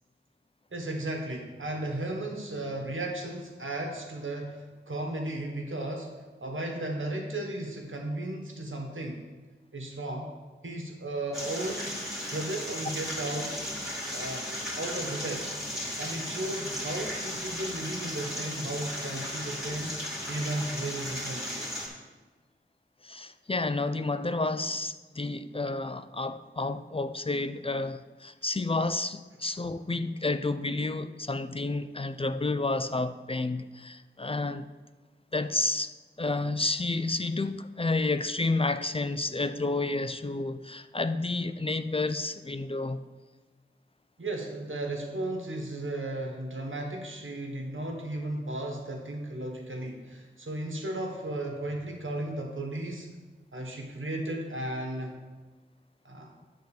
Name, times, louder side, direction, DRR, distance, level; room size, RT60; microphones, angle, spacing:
voice 1, 0.7-9.2 9.7-10.3 10.6-12.0 12.3-13.6 14.1-15.5 16.0-20.0 20.3-21.7 44.2-53.2 53.5-55.2 56.0-56.3, right 1 dB, 85° right, 1.4 m, -35 dB
sound 1, 11.3-21.9, equal, ahead, 2.5 m, -36 dB
voice 2, 23.0-34.7 35.3-43.1, left 3 dB, 30° left, 0.3 m, -30 dB
9.1 x 3.9 x 7.1 m
wide cardioid pair, 55°, 20 cm